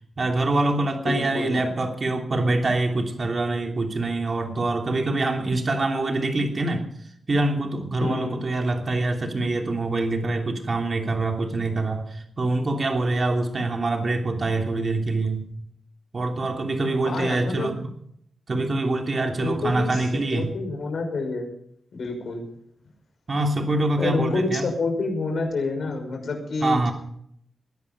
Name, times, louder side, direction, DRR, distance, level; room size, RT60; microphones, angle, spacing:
voice 1, 0.2-6.9 7.3-15.5 16.1-17.9 18.5-20.5 23.3-24.7 26.6-26.9, right 2 dB, 40° right, 3 dB, 3.0 m, -25 dB
voice 2, 1.0-1.6 8.0-8.4 17.1-17.8 19.4-21.5 21.9-22.4 24.0-26.9, left 3 dB, 65° left, 3 dB, 5.8 m, -28 dB
21.0 x 11.5 x 5.4 m, 0.67 s
wide cardioid pair, 130°, 0 cm